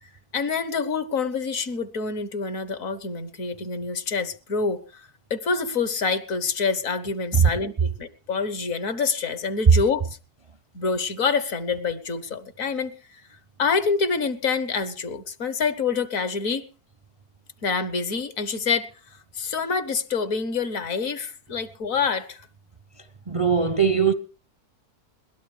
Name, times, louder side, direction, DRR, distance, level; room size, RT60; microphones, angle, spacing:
voice 1, 0.0-10.2 10.7-13.2 13.6-16.7 17.6-22.5, left 5 dB, 60° left, 1.5 m, -27 dB
voice 2, 23.0-24.1, right 6 dB, 35° right, 0.5 m, -21 dB
21.5 x 17.5 x 3.4 m
omnidirectional pair, 1.6 m